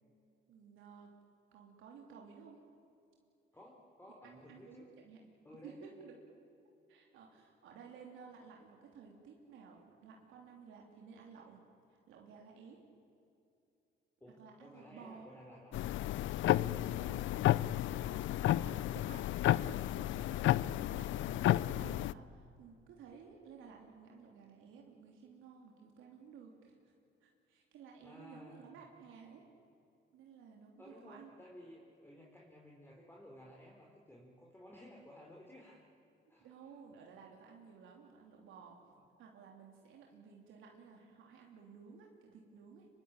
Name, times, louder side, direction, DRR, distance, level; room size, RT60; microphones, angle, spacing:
voice 1, 0.5-1.1 1.5-2.6 4.2-5.2 5.6-6.2 6.9-11.6 11.9-12.8 14.4-15.3 16.5-17.2 18.0-26.9 27.2-29.4 30.1-31.3 36.4-38.8 39.2-42.9, right 6 dB, 90° right, 0 dB, 3.0 m, -55 dB
voice 2, 3.5-4.9 5.4-6.1 14.2-15.8 28.0-28.7 30.8-35.9 36.3-36.7 38.9-39.0, left 1 dB, 10° left, -2 dB, 4.0 m, -56 dB
sound 1, 15.7-22.1, left 14 dB, 75° left, 0.5 m, -32 dB
25.0 x 22.5 x 9.0 m, 2.7 s
cardioid pair, 90°, 20 cm